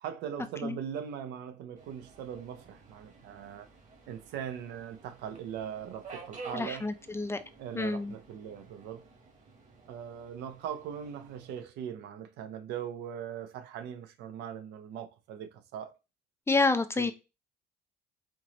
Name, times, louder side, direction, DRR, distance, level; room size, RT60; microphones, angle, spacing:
voice 1, 0.0-3.7 4.1-6.9 7.6-9.0 9.9-15.9 17.0-17.1, right 9 dB, 80° right, 0.7 m, -40 dB
Subway metro underground, 1.8-11.6, right 4 dB, 45° right, 1.4 m, -51 dB
voice 2, 6.5-7.4 7.7-8.1 16.5-17.1, left 3 dB, 15° left, 0.4 m, -28 dB
4.6 x 2.8 x 2.9 m
cardioid pair, 110°, 17 cm